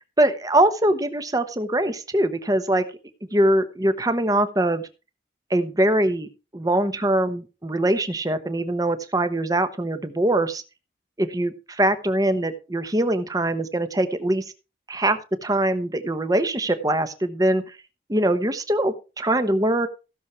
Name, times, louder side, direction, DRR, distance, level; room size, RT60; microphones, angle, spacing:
voice 1, 0.2-2.8 3.3-4.8 5.5-6.3 6.5-10.6 11.2-14.4 14.9-17.6 18.1-19.9, right 1 dB, 20° right, 11 dB, 1.0 m, -22 dB
16.0 x 6.4 x 4.5 m, 0.32 s
head